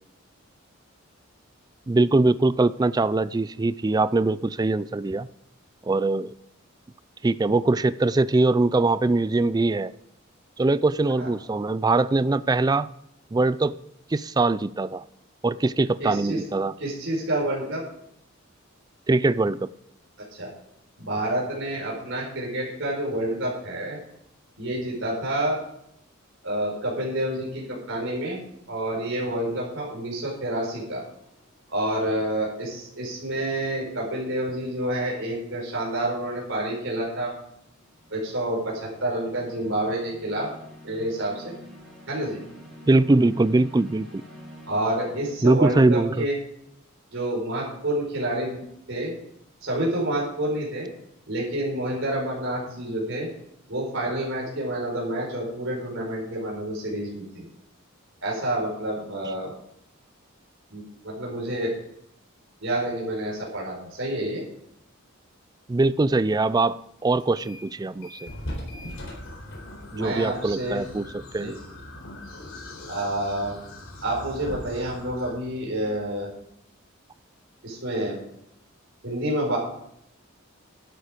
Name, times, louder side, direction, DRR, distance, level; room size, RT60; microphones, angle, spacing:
voice 1, 1.9-5.3 5.8-6.3 7.2-9.9 10.6-12.9 13.3-13.8 14.1-15.0 15.4-16.7 19.1-19.7 42.9-44.2 45.4-46.3 65.7-68.3 69.9-71.6, right 2 dB, 20° right, 16 dB, 0.3 m, -22 dB
voice 2, 16.0-16.4 16.8-17.8 20.4-20.5 21.0-24.0 24.6-25.6 26.4-28.4 28.7-31.0 31.7-37.3 38.1-40.5 40.8-41.5 42.1-42.4 44.7-46.3 47.1-48.6 48.9-49.2 49.6-50.9 51.3-53.3 53.7-57.4 58.2-59.5 60.7-61.7 62.6-64.4 69.9-70.8 71.4-71.5 72.9-73.5 74.0-76.3 77.6-78.2 79.0-79.6, right 1 dB, 65° right, -3 dB, 4.9 m, -28 dB
sound 1, 31.2-31.6 37.5-45.3, equal, ahead, 4.3 m, -47 dB
sound 2, 67.2-67.7 68.0-76.5, left 1 dB, 65° left, 4.2 m, -41 dB
sound 3, 68.9-75.3, left 2 dB, 80° left, 2.8 m, -44 dB
12.0 x 10.5 x 5.1 m, 0.76 s
head